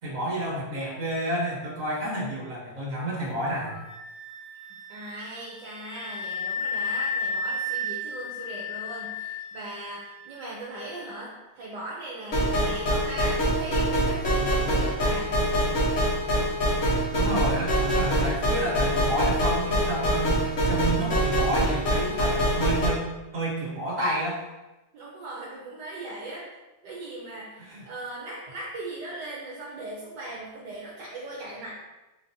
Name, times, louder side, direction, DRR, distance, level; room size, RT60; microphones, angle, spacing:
voice 1, 0.0-3.7 17.1-24.4 27.6-27.8, right 1 dB, 45° right, -6 dB, 1.6 m, -30 dB
Wind instrument woodwind instrument, 3.6-11.1, left 2 dB, 70° left, 1.0 m, -34 dB
voice 2, 4.7-15.3 24.9-26.5 26.8-31.7, right 2 dB, 70° right, -6 dB, 1.3 m, -39 dB
sound 1, 12.3-22.9, equal, 50° left, 1.4 m, -24 dB
4.4 x 2.9 x 2.7 m, 1.1 s
omnidirectional pair, 2.0 m